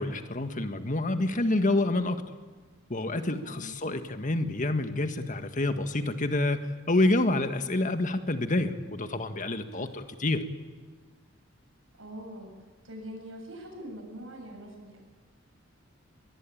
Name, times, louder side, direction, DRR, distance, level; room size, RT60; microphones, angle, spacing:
voice 1, 0.0-2.2 2.9-10.4, left 2 dB, 40° left, 8 dB, 1.7 m, -28 dB
voice 2, 3.1-3.7 9.8-9.9 12.0-12.5 12.8-15.0, equal, 80° right, 2 dB, 7.8 m, -43 dB
24.0 x 21.0 x 8.8 m, 1.5 s
head